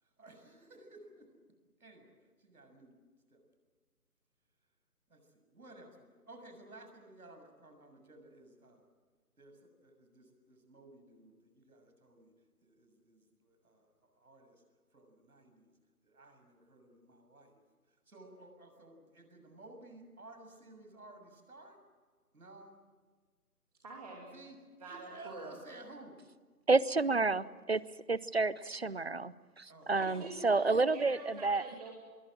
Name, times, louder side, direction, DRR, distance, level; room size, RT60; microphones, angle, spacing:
voice 1, 0.2-1.4 1.8-2.1 2.4-2.9 3.3-3.5 5.1-8.9 9.4-12.3 12.6-14.6 14.9-15.7 16.0-17.6 17.9-21.8 22.3-22.7 24.3-26.2 29.7-29.9, right 2 dB, 65° right, 6 dB, 7.0 m, -55 dB
voice 2, 23.8-24.3 24.8-25.5 29.9-31.9, right 2 dB, 25° right, -2 dB, 2.7 m, -46 dB
voice 3, 26.7-27.8 28.1-31.6, right 3 dB, 45° right, 19 dB, 0.7 m, -30 dB
25.5 x 22.5 x 7.7 m, 1.4 s
figure-of-eight pair, 165°, 46 cm